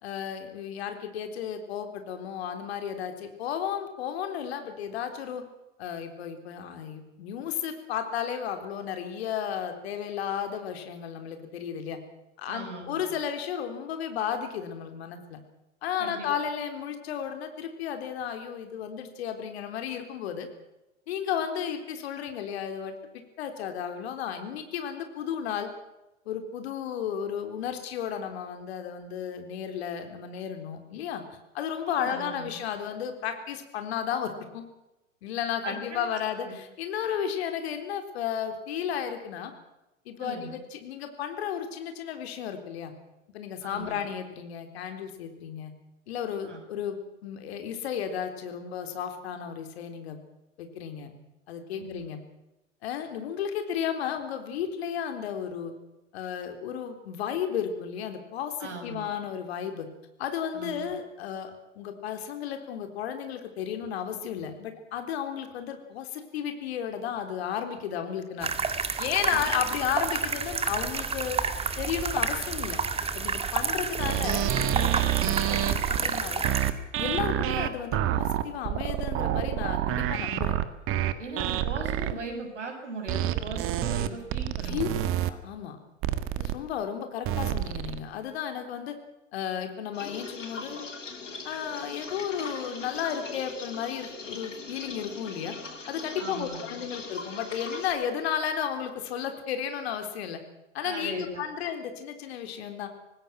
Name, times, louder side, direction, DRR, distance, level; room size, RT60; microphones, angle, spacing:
voice 1, 0.0-5.4 5.8-12.0 12.4-15.4 15.8-20.5 21.1-23.0 23.4-25.7 26.3-31.2 31.5-34.6 35.2-39.5 40.1-42.9 43.3-45.7 46.1-50.2 50.6-51.1 51.5-52.2 52.8-55.7 56.1-59.9 60.2-68.5 69.0-71.4 71.8-72.8 73.1-76.4 77.0-80.6 84.6-84.9 85.3-85.8 86.4-89.0 89.3-90.8 91.4-95.6 95.9-100.4 100.7-102.9, left 8 dB, 55° left, 7 dB, 3.8 m, -33 dB
voice 2, 12.5-13.0 16.0-16.3 31.8-32.6 35.6-36.0 36.5-36.6 40.2-40.6 43.6-44.1 46.4-46.6 51.8-52.0 58.6-59.1 60.5-60.9 69.2-69.5 81.2-85.0 96.2-96.8 100.8-101.4, right 3 dB, 70° right, 4 dB, 7.2 m, -39 dB
sound 1, 68.4-76.7, right 5 dB, 15° right, 2.0 m, -30 dB
sound 2, 74.0-82.1 83.1-85.3 86.0-86.5 87.2-88.0, right 12 dB, 35° right, 1.7 m, -28 dB
sound 3, 89.9-97.9, left 4 dB, 75° left, 4.1 m, -40 dB
26.0 x 19.5 x 6.0 m, 0.95 s
figure-of-eight pair, 90°, 37 cm